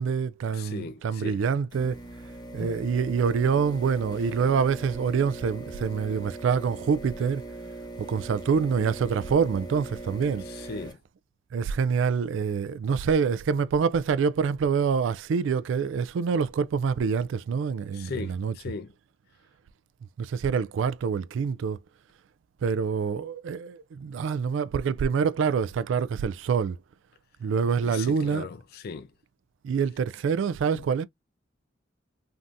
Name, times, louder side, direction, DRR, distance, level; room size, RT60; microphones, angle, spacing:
voice 1, 0.0-2.0 2.5-7.4 8.0-10.4 11.5-18.5 20.2-21.8 22.6-26.8 27.4-28.5 29.6-31.0, right 6 dB, 70° right, 0.3 m, -26 dB
voice 2, 0.5-1.4 10.4-11.0 17.9-18.9 27.8-29.1 30.7-30.8, left 4 dB, 55° left, 0.4 m, -38 dB
sound 1, 1.7-10.9, right 2 dB, 20° left, 0.9 m, -40 dB
3.4 x 2.6 x 2.6 m
head